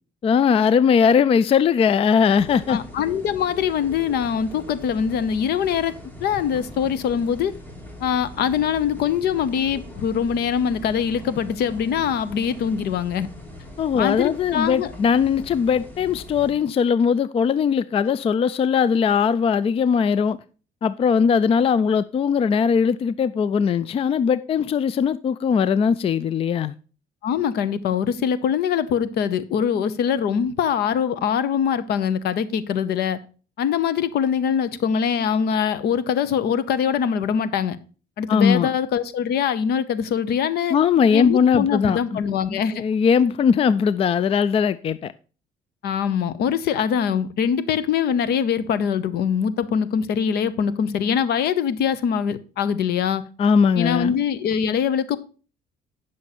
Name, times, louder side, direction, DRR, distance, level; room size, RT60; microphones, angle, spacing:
voice 1, 0.2-2.8 13.8-20.4 20.8-26.7 38.3-38.7 40.7-42.2 42.5-45.1 53.4-54.1, left 6 dB, 35° left, 0.4 m, -20 dB
sound 1, 2.4-16.5, left 1 dB, 10° left, 2.7 m, -41 dB
voice 2, 2.7-5.9 6.2-7.5 8.0-13.3 14.0-14.9 27.2-33.2 33.6-37.8 38.2-40.8 41.1-42.8 45.8-53.2 53.8-55.2, left 8 dB, 70° left, 0.9 m, -23 dB
9.7 x 6.3 x 4.2 m
cardioid pair, 110°, 17 cm